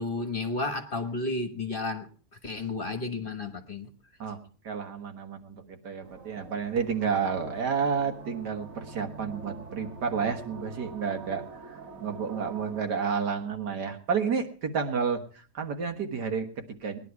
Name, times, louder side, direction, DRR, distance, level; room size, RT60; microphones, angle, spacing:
voice 1, 0.0-2.1 2.4-3.9, left 3 dB, 35° left, 7 dB, 1.3 m, -32 dB
voice 2, 4.6-17.0, right 6 dB, 80° right, 5 dB, 2.2 m, -31 dB
sound 1, 6.0-12.9, right 3 dB, 55° right, 1.9 m, -46 dB
19.5 x 11.0 x 4.7 m, 0.39 s
omnidirectional pair, 1.8 m